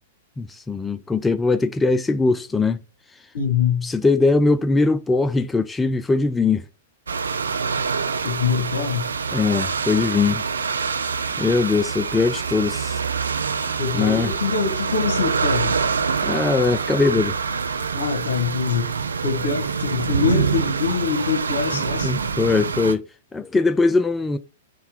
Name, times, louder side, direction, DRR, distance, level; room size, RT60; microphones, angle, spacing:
voice 1, 0.4-2.8 3.8-6.6 9.3-10.4 11.4-13.0 13.9-14.3 16.2-17.4 22.0-23.0 23.3-24.4, left 3 dB, 10° left, 0.3 m, -21 dB
voice 2, 3.3-3.9 8.2-9.0 13.8-15.8 17.9-18.9 19.2-22.2, left 7 dB, 75° left, 1.1 m, -24 dB
sound 1, 7.1-23.0, right 5 dB, 85° right, 0.4 m, -25 dB
3.8 x 2.2 x 4.3 m
hypercardioid pair, 110°, 0 cm